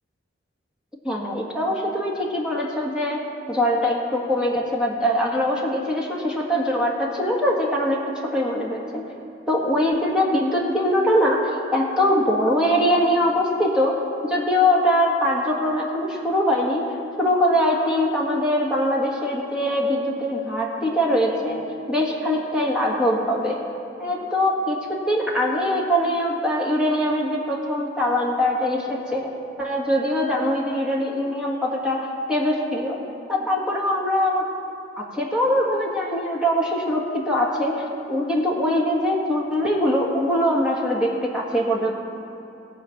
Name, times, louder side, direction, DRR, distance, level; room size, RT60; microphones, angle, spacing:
voice 1, 1.0-3.2 3.5-8.0 8.3-9.1 9.5-11.4 11.7-16.9 17.2-21.6 21.9-23.6 24.0-29.3 29.6-33.0 33.3-34.5 35.0-41.9, equal, 5° right, -3 dB, 1.6 m, -22 dB
18.0 x 7.1 x 5.9 m, 2.9 s
head